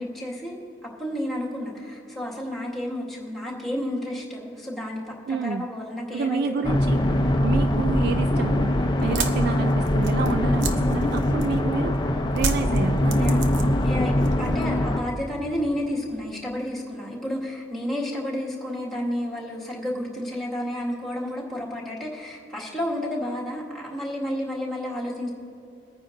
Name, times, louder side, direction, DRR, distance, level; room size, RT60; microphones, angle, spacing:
voice 1, 0.0-6.6 7.7-7.9 9.0-9.2 13.2-13.4 13.8-25.3, left 1 dB, ahead, -4 dB, 1.9 m, -31 dB
voice 2, 5.3-5.7 6.1-13.4, right 5 dB, 60° right, 9 dB, 0.3 m, -30 dB
sound 1, 6.6-15.0, left 1 dB, 25° left, 0.6 m, -22 dB
sound 2, 9.0-11.7 12.4-13.9 14.2-14.8, right 4 dB, 80° right, 0.8 m, -31 dB
22.5 x 9.5 x 2.6 m, 2.7 s
head